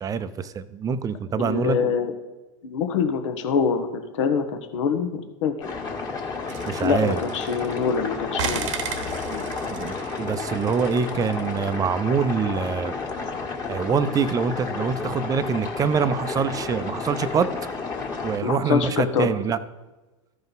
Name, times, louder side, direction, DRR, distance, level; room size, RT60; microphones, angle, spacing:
voice 1, 0.0-1.8 6.7-7.2 9.3-9.4 9.7-12.9 13.7-17.5 18.2-19.6, right 6 dB, 20° right, 13 dB, 0.6 m, -25 dB
voice 2, 1.4-2.1 2.6-5.5 6.8-8.7 9.0-9.5 13.2-13.3 18.4-19.3, left 6 dB, 70° left, 6 dB, 1.1 m, -25 dB
sound 1, 5.6-18.4, left 4 dB, 20° left, 1.6 m, -31 dB
sound 2, 6.5-8.0 8.4-11.6, right 6 dB, 70° right, 1.1 m, -35 dB
14.0 x 5.3 x 4.0 m, 1.1 s
hypercardioid pair, 105°, 16 cm